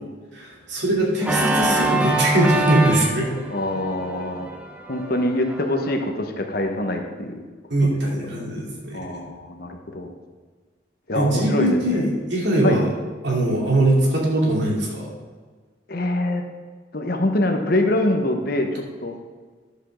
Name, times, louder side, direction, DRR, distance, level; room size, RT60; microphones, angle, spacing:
voice 1, 0.3-3.3 7.7-9.1 11.1-12.9 13.2-15.1, right 1 dB, 60° right, -2 dB, 2.7 m, -21 dB
Organ, 1.2-6.0, right 2 dB, 5° right, 0.8 m, -25 dB
voice 2, 3.5-4.5 4.9-7.4 7.8-8.5 8.9-10.1 11.1-12.1 12.6-12.8 15.9-16.4 16.9-19.2, left 1 dB, 50° left, 4 dB, 1.1 m, -24 dB
11.0 x 5.5 x 6.3 m, 1.5 s
head